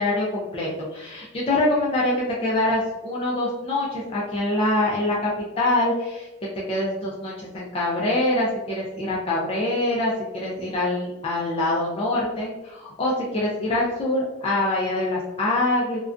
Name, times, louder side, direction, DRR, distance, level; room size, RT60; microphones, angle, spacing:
voice 1, 0.0-2.1 2.4-5.3 5.6-6.3 6.7-10.1 10.4-16.0, left 1 dB, 25° left, -5 dB, 0.4 m, -24 dB
2.4 x 2.2 x 2.4 m, 1.1 s
head